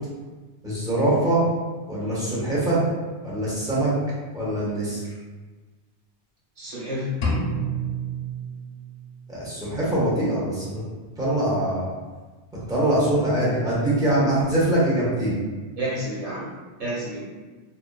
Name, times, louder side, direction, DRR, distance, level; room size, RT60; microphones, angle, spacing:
voice 1, 0.6-1.4 1.9-2.8 3.2-3.9 4.3-5.0 9.3-10.8 11.2-11.8 12.7-15.3, right 1 dB, 5° right, -9 dB, 0.6 m, -23 dB
voice 2, 6.6-7.2 15.8-16.5 16.8-17.2, equal, 90° right, -7 dB, 1.3 m, -29 dB
sound 1, 7.2-9.2, right 2 dB, 70° left, 0.8 m, -28 dB
2.6 x 2.4 x 2.2 m, 1.3 s
omnidirectional pair, 1.1 m